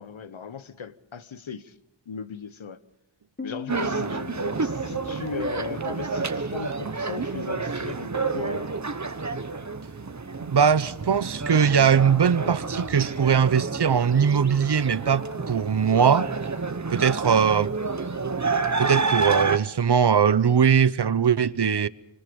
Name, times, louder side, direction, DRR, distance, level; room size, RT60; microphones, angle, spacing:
voice 1, 0.0-1.7 2.1-2.8 3.4-4.2 4.6-8.7 17.4-17.5, left 6 dB, 75° left, 1.1 m, -37 dB
Piano, 3.4-6.8, left 7 dB, 20° left, 1.3 m, -41 dB
sound 1, 3.7-19.6, right 4 dB, 35° right, 1.1 m, -29 dB
voice 2, 10.4-16.3 16.9-17.7 18.8-21.9, right 7 dB, 60° right, 0.8 m, -21 dB
26.0 x 25.0 x 5.3 m
wide cardioid pair, 40°, 47 cm